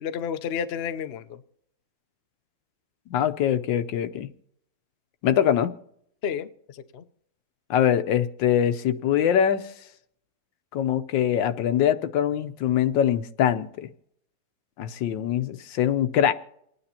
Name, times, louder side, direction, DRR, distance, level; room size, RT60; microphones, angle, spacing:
voice 1, 0.0-1.4 6.2-7.0, left 7 dB, 60° left, 0.6 m, -31 dB
voice 2, 3.1-4.3 5.2-5.7 7.7-9.7 10.7-13.9 14.8-16.3, left 9 dB, 85° left, 1.5 m, -23 dB
28.5 x 9.8 x 2.8 m
omnidirectional pair, 1.9 m